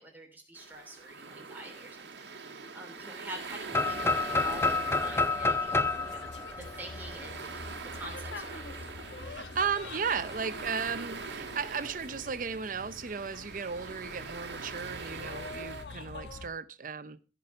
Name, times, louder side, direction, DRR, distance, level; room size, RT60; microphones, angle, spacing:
voice 1, 0.0-6.3 6.5-9.1, right 1 dB, 10° right, 2.9 m, -47 dB
sound 1, 0.6-15.8, right 4 dB, 80° right, 1.4 m, -43 dB
sound 2, 3.7-7.6, left 3 dB, 15° left, 0.4 m, -29 dB
sound 3, 3.8-16.5, left 2 dB, 80° left, 1.3 m, -46 dB
voice 2, 9.2-17.3, right 6 dB, 50° right, 0.6 m, -35 dB
15.0 x 5.3 x 5.5 m
head